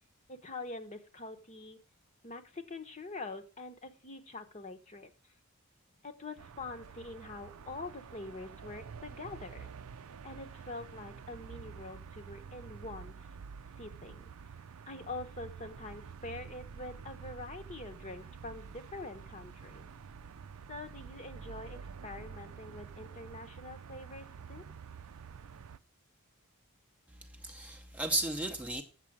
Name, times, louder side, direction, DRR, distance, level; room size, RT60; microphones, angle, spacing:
voice 1, 0.3-1.8 2.2-5.1 6.0-9.7 10.2-13.1 13.8-14.3 14.9-19.9 20.7-24.6, left 2 dB, 30° left, 1.0 m, -45 dB
sound 1, 6.4-25.8, right 6 dB, 75° right, 0.5 m, -48 dB
voice 2, 27.2-28.8, right 2 dB, 5° right, 0.7 m, -34 dB
8.4 x 7.0 x 6.1 m
head